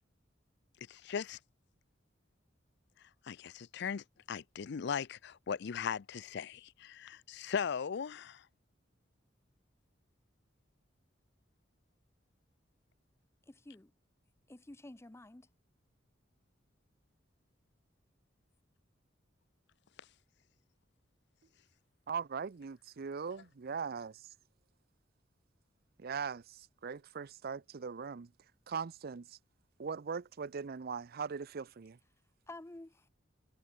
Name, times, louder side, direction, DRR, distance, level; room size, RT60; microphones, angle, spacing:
voice 1, 0.9-1.4 3.2-8.4, left 6 dB, 65° left, 0.5 m, -38 dB
voice 2, 13.5-13.9 14.5-15.5 32.5-33.1, left 2 dB, 15° left, 0.6 m, -50 dB
voice 3, 22.1-24.3 26.0-28.3 28.7-29.4 29.8-32.0, right 6 dB, 55° right, 0.5 m, -40 dB
head